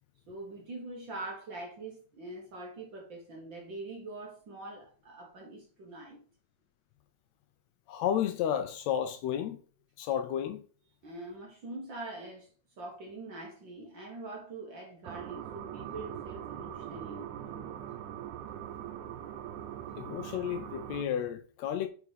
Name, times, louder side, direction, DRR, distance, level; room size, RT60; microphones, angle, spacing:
voice 1, 0.3-6.2 11.0-17.8, right 2 dB, 50° right, 1.6 m, -44 dB
voice 2, 7.9-9.6 10.0-10.6 20.0-21.9, left 9 dB, 75° left, 1.7 m, -32 dB
sound 1, 15.0-21.1, right 10 dB, 85° right, 2.2 m, -42 dB
5.3 x 4.7 x 4.9 m
omnidirectional pair, 3.4 m